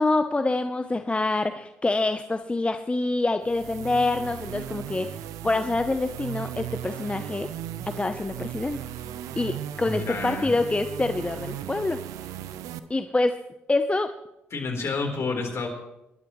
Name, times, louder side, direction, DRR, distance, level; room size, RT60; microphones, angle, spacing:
voice 1, 0.0-7.5 7.9-8.8 9.4-12.0 12.9-13.4 13.7-14.1, left 2 dB, 20° left, 8 dB, 0.8 m, -26 dB
sound 1, 3.4-12.8, right 11 dB, 70° right, 0.8 m, -37 dB
voice 2, 9.8-10.5 14.5-15.7, left 4 dB, 50° left, 2 dB, 4.0 m, -29 dB
25.0 x 12.0 x 3.2 m, 0.88 s
hypercardioid pair, 50°, 6 cm